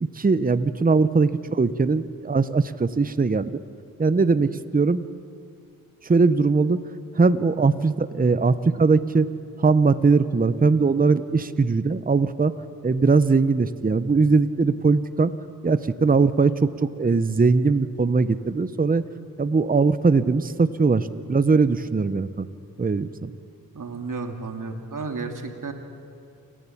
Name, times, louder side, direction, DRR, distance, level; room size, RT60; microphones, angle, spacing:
voice 1, 0.0-3.6 4.0-5.1 6.0-6.8 7.1-9.3 9.6-12.5 12.8-15.3 15.6-19.1 19.4-22.5 22.8-23.3, right 4 dB, 25° right, 13 dB, 0.8 m, -20 dB
voice 2, 23.7-25.7, right 4 dB, 60° right, 4 dB, 2.3 m, -32 dB
29.5 x 11.0 x 8.4 m, 2.3 s
cardioid pair, 50°, 35 cm